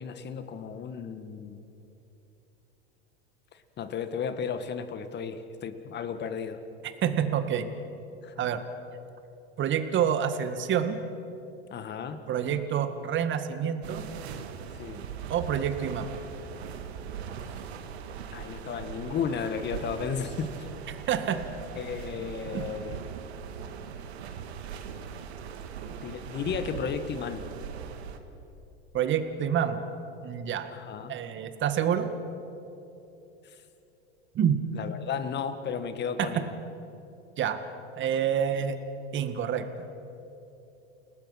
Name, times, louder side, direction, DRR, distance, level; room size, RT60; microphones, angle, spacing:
voice 1, 0.0-1.6 3.5-6.6 8.2-8.4 11.7-12.2 14.8-15.0 18.3-20.5 21.8-23.0 26.0-27.4 30.7-31.1 33.4-33.6 34.7-36.5, left 6 dB, 30° left, 10 dB, 1.8 m, -34 dB
voice 2, 7.0-7.7 8.4-8.6 9.6-11.0 12.3-14.0 15.3-16.1 20.9-21.4 22.5-22.6 28.9-29.8 30.2-30.7 31.1-32.1 34.4-34.6 36.2-36.3 37.4-37.6 38.0-38.7 39.1-39.9, right 8 dB, 35° right, 9 dB, 1.9 m, -27 dB
sound 1, 13.8-28.2, right 7 dB, 75° right, 2.0 m, -40 dB
30.0 x 19.0 x 5.9 m, 3.0 s
hypercardioid pair, 95°, 33 cm